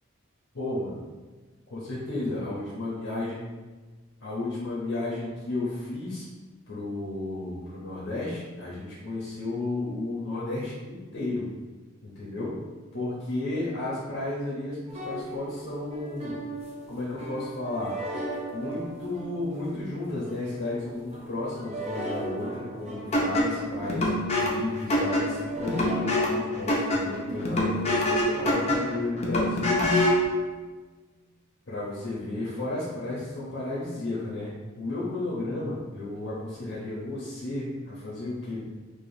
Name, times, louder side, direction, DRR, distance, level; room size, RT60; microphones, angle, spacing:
voice 1, 0.5-1.0 1.7-3.4 4.2-6.3 6.7-11.5 12.0-12.6 12.9-16.4 16.9-17.9 18.3-29.8 31.7-34.5 34.8-38.6, left 2 dB, 65° left, -7 dB, 0.9 m, -33 dB
sound 1, 14.9-28.6, right 1 dB, 30° right, 0.6 m, -38 dB
sound 2, 23.1-30.3, left 1 dB, 30° left, 0.6 m, -26 dB
4.8 x 2.4 x 2.7 m, 1.3 s
head